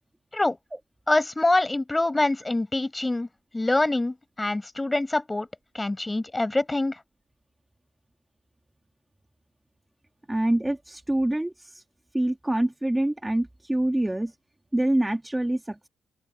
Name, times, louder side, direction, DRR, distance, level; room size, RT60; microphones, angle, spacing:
voice 1, 1.1-3.3 3.5-5.5 5.7-7.0, left 2 dB, 15° left, 5.1 m, -25 dB
voice 2, 10.3-11.8 12.1-14.3 14.7-15.9, right 1 dB, 10° right, 1.7 m, -25 dB
open air
cardioid pair, 90°, 0 cm